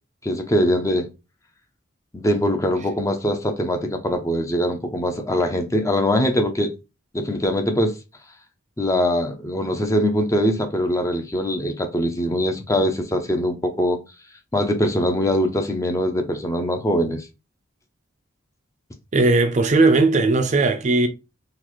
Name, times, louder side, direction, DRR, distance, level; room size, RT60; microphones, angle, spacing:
voice 1, 0.2-1.1 2.1-6.7 7.1-8.0 8.8-14.0 14.5-17.3, equal, 15° left, 0.5 m, -22 dB
voice 2, 19.1-21.1, right 3 dB, 35° right, 0.5 m, -17 dB
3.9 x 2.5 x 3.0 m
head